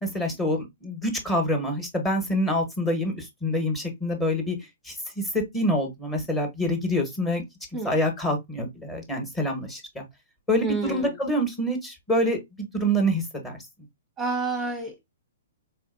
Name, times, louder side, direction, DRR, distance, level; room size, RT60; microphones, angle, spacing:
voice 1, 0.0-4.6 4.9-5.2 5.5-7.4 7.8-10.0 10.5-13.6, equal, 10° left, 1.2 m, -26 dB
voice 2, 10.6-11.2 14.2-15.0, right 3 dB, 10° right, 0.9 m, -29 dB
4.2 x 2.5 x 2.5 m
hypercardioid pair, 140°, 0 cm